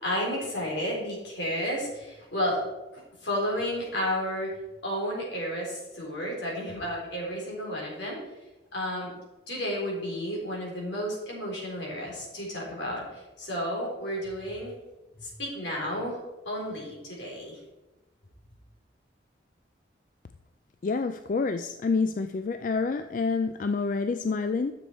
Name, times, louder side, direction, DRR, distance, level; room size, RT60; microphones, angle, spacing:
voice 1, 0.0-2.6 2.9-4.5 4.8-8.2 8.7-9.1 9.5-14.7 15.2-17.6, equal, 75° left, -3 dB, 3.7 m, -32 dB
voice 2, 20.8-24.7, left 4 dB, 45° left, 9 dB, 0.3 m, -28 dB
10.0 x 7.0 x 4.3 m, 1.0 s
head